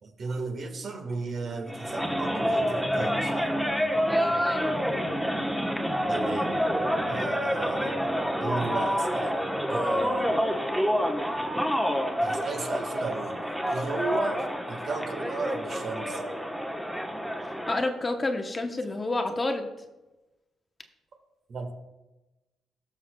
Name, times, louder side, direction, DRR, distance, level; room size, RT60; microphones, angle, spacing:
voice 1, 0.0-3.4 6.1-6.6 7.1-7.9 8.4-9.3 9.7-10.4 12.2-16.2 21.5-21.7, right 4 dB, 55° right, 5 dB, 1.4 m, -35 dB
sound 1, 1.7-17.9, equal, 5° right, 1.0 m, -28 dB
voice 2, 4.1-4.7 17.4-19.7, left 2 dB, 25° left, 5 dB, 0.8 m, -30 dB
18.0 x 6.4 x 2.2 m, 1.1 s
cardioid pair, 90°, 0 cm